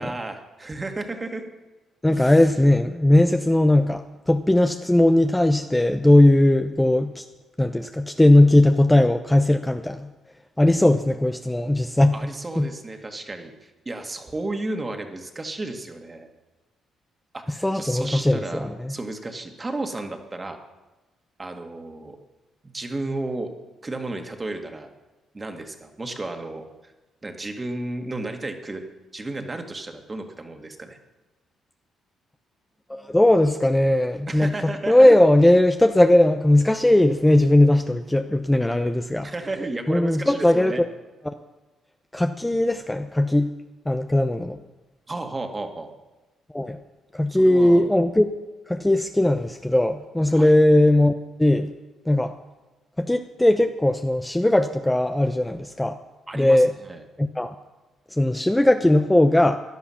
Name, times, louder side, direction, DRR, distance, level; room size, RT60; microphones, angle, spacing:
voice 1, 0.0-1.4 2.1-2.6 12.1-16.3 17.3-20.6 21.4-22.2 22.7-23.5 23.8-24.9 25.3-26.9 27.2-28.8 29.1-31.0 34.3-35.2 39.2-40.8 45.1-45.9 47.3-47.8 50.3-50.5 56.3-57.0, right 2 dB, 25° right, 5 dB, 1.9 m, -33 dB
voice 2, 2.0-7.2 7.6-10.1 10.6-12.2 12.6-12.7 17.6-18.9 32.9-39.3 39.9-40.9 41.3-41.4 42.1-43.5 43.9-44.6 46.5-46.8 47.1-48.3 48.7-51.1 51.4-51.7 52.1-52.3 53.0-56.0 56.4-56.7 57.2-57.5 58.1-59.6, left 1 dB, 10° left, 7 dB, 0.7 m, -18 dB
16.0 x 11.0 x 5.8 m, 1.1 s
cardioid pair, 90°, 0 cm